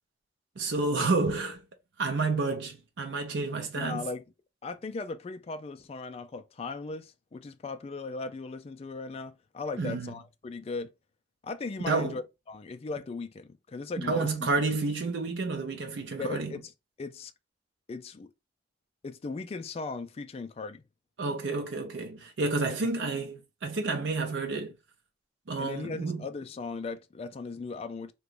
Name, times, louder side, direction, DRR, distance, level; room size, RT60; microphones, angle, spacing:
voice 1, 0.6-1.6 2.0-4.1 9.8-10.1 11.9-12.2 14.0-16.6 21.2-24.7 25.5-26.3, right 3 dB, 80° right, 0.6 m, -30 dB
voice 2, 3.7-4.2 4.6-10.9 11.4-14.5 16.2-16.7 17.0-17.3 17.9-18.3 19.0-20.8 25.6-28.1, left 3 dB, 35° left, 0.3 m, -38 dB
2.9 x 2.2 x 3.7 m
head